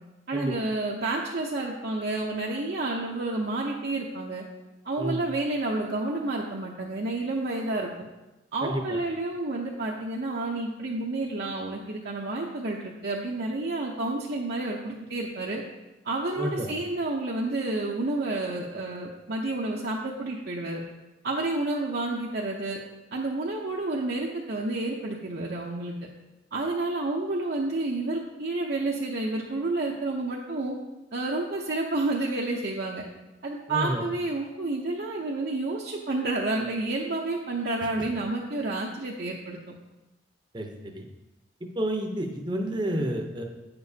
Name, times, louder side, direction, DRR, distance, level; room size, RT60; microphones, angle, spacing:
voice 1, 0.3-4.4 4.8-7.9 8.5-15.6 16.0-20.8 21.2-22.8 23.1-25.9 26.5-30.8 31.1-33.0 33.4-39.6, right 2 dB, 60° right, -3 dB, 0.7 m, -30 dB
voice 2, 16.4-16.7 33.7-34.0 40.5-41.1 41.6-43.4, right 1 dB, 25° right, 3 dB, 0.8 m, -30 dB
8.9 x 6.9 x 2.8 m, 1.0 s
head